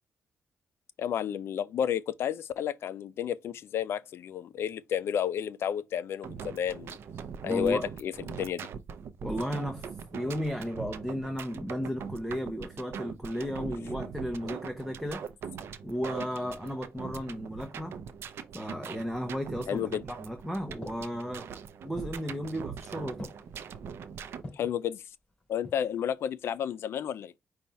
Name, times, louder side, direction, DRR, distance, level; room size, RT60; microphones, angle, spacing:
voice 1, 1.0-7.0 7.4-8.7 19.7-20.0 24.5-25.0 25.5-27.3, left 9 dB, 70° left, 0.4 m, -31 dB
sound 1, 6.2-24.4, right 7 dB, 75° right, 0.5 m, -42 dB
voice 2, 7.4-7.9 9.2-15.2 15.8-17.9 18.5-21.5 21.8-23.3, equal, ahead, 0.7 m, -34 dB
sound 2, 19.5-20.3 20.8-21.3 22.0-22.4 23.2-23.6 24.4-24.8 25.4-26.0 26.3-26.4, left 1 dB, 25° left, 2.8 m, -46 dB
5.3 x 2.3 x 4.2 m
cardioid pair, 105°, 4 cm